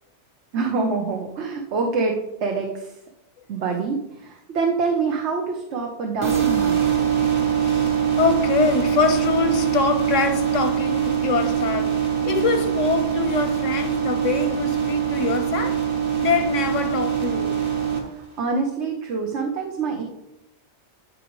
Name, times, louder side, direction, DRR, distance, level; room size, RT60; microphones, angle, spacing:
voice 1, 0.5-3.0 3.5-7.0 18.1-20.0, right 4 dB, 65° right, 1.1 m, -26 dB
sound 1, 6.2-18.0, right 8 dB, 45° right, 1.5 m, -23 dB
voice 2, 7.6-12.0 12.2-15.8 16.2-17.5, left 5 dB, 80° left, 1.3 m, -24 dB
13.0 x 5.0 x 3.1 m
omnidirectional pair, 1.3 m